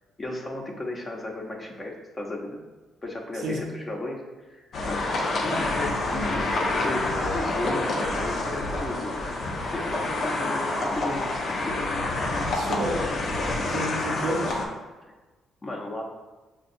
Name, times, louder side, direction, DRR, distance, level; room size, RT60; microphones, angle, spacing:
voice 1, 0.2-2.6 3.0-4.2 4.5-11.8 15.6-16.1, left 2 dB, 30° left, -1 dB, 0.8 m, -35 dB
sound 1, 4.7-14.7, left 2 dB, 55° left, 0.6 m, -27 dB
voice 2, 12.5-13.0 13.6-14.6, right 2 dB, 80° right, -1 dB, 0.7 m, -30 dB
5.6 x 2.3 x 2.6 m, 1.2 s
cardioid pair, 90°, 0 cm